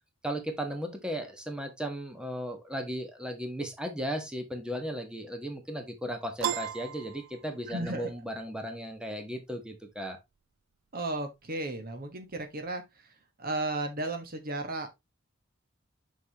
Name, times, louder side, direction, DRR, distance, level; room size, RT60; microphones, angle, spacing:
voice 1, 0.2-10.2, equal, 5° right, 1.3 m, -36 dB
Piano, 6.4-8.0, right 9 dB, 75° right, 0.4 m, -34 dB
voice 2, 7.7-8.1 10.9-13.1 13.4-14.9, right 2 dB, 50° right, 1.3 m, -34 dB
6.4 x 6.3 x 3.0 m
head